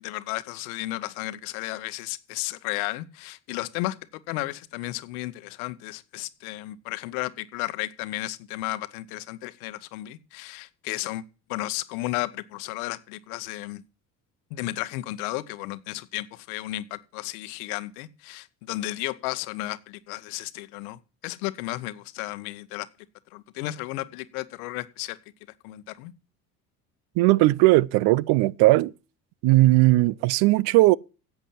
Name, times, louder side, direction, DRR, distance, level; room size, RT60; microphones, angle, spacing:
voice 1, 0.0-4.0 4.3-11.2 11.5-13.8 14.5-22.9 23.3-25.2 25.6-26.1, left 17 dB, 70° left, 1.0 m, -33 dB
voice 2, 27.2-28.9 29.4-31.0, right 19 dB, 55° right, 0.5 m, -18 dB
10.5 x 8.1 x 7.4 m
hypercardioid pair, 65°, 46 cm